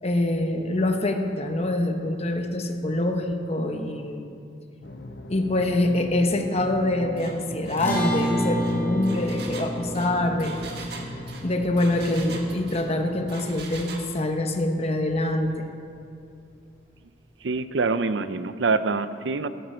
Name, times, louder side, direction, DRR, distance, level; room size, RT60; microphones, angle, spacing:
voice 1, 0.0-4.3 5.3-10.6 11.4-15.7, left 1 dB, 35° left, 5 dB, 0.9 m, -25 dB
sound 1, 4.8-13.5, left 1 dB, 65° left, 1.1 m, -40 dB
Engine, 7.2-7.4 7.7-7.8 8.2-12.9 13.3-14.1, right 4 dB, 60° right, 1.7 m, -41 dB
sound 2, 7.8-14.3, right 1 dB, 15° left, 3.8 m, -31 dB
voice 2, 17.4-19.5, right 4 dB, 80° right, 12 dB, 0.6 m, -25 dB
16.0 x 14.0 x 4.5 m, 2.6 s
head